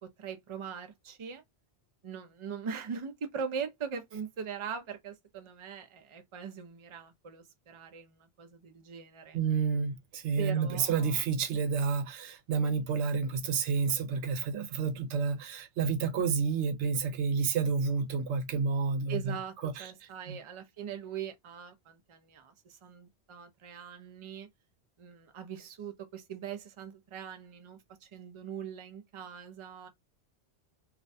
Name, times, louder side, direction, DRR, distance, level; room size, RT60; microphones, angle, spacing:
voice 1, 0.0-1.4 2.0-9.4 10.4-11.2 19.1-24.5 25.0-29.9, right 7 dB, 45° right, 0.4 m, -41 dB
voice 2, 9.3-19.3 19.6-19.9 20.3-20.4, right 5 dB, 85° right, 0.9 m, -30 dB
2.4 x 2.1 x 2.6 m
omnidirectional pair, 1.1 m